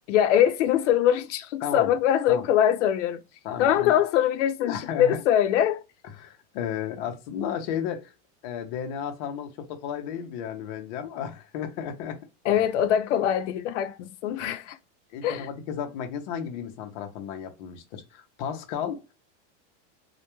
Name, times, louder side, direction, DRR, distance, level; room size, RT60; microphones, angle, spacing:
voice 1, 0.1-3.2 3.6-5.8 12.4-14.8 15.2-15.5, left 10 dB, 85° left, 0.6 m, -23 dB
voice 2, 1.6-1.9 2.3-2.5 3.4-3.9 4.6-5.2 6.2-8.1 8.4-12.2 15.1-19.0, left 8 dB, 40° left, 0.5 m, -33 dB
2.2 x 2.1 x 2.9 m
supercardioid pair, 170°, 36 cm